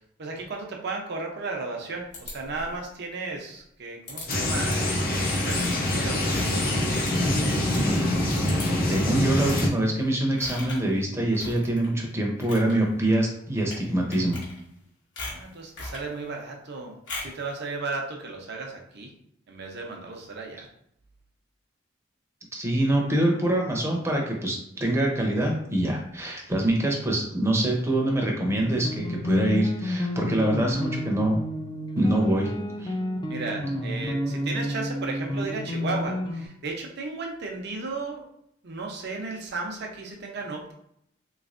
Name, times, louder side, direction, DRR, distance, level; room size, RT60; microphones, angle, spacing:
voice 1, 0.2-7.1 15.3-19.1 19.5-20.7 33.3-38.2 38.6-40.7, right 3 dB, 60° right, 1 dB, 0.7 m, -35 dB
sound 1, 2.1-2.8 4.1-4.4 4.7-5.0 5.4-7.8 8.1-8.2 8.5-8.9 9.4-9.7 10.4-10.9 11.3-11.9 12.3-12.7 13.6-13.8 14.1-14.8 15.2-16.1 17.1-17.4, left 2 dB, 65° left, 1.3 m, -39 dB
sound 2, 4.3-9.7, left 1 dB, 50° left, 0.7 m, -25 dB
voice 2, 8.9-14.4 22.5-31.4 31.9-32.5 32.8-32.9, right 1 dB, 15° right, 0 dB, 0.7 m, -25 dB
sound 3, 28.2-36.5, equal, 25° left, 0.4 m, -31 dB
3.4 x 3.1 x 2.5 m, 0.74 s
head